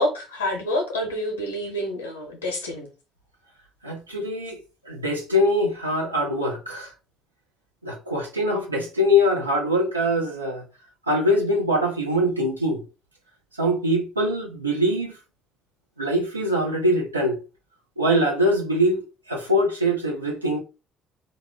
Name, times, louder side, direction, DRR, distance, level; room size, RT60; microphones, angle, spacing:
voice 1, 0.0-2.9, left 1 dB, 80° left, 0.7 m, -27 dB
voice 2, 3.8-4.6 4.9-6.9 7.8-10.6 11.1-12.8 13.6-15.1 16.0-17.4 18.0-20.6, equal, 90° right, 0.5 m, -23 dB
2.3 x 2.1 x 3.4 m
figure-of-eight pair, 50°, 0 cm